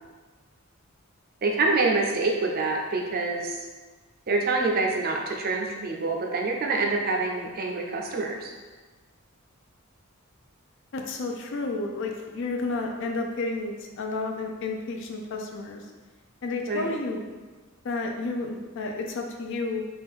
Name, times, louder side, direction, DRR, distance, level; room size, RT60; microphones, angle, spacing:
voice 1, 1.4-3.6 4.3-8.5 16.7-16.9, right 3 dB, 45° right, 1 dB, 0.5 m, -26 dB
voice 2, 10.9-15.8 16.4-17.2 17.8-19.8, left 3 dB, 60° left, 2 dB, 0.4 m, -31 dB
3.5 x 2.4 x 3.6 m, 1.3 s
head